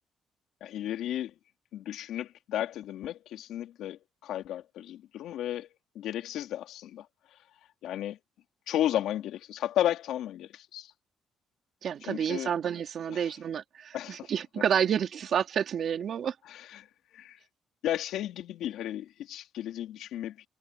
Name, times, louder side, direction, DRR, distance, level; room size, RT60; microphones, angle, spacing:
voice 1, 0.6-1.3 1.7-5.7 5.9-7.1 7.8-8.2 8.7-10.9 12.0-12.5 13.1-13.3 13.9-14.3 16.5-16.9 17.1-17.4 17.8-20.5, left 12 dB, 80° left, 3.2 m, -33 dB
voice 2, 11.8-16.3, right 8 dB, 50° right, 3.4 m, -29 dB
cardioid pair, 155°, 0 cm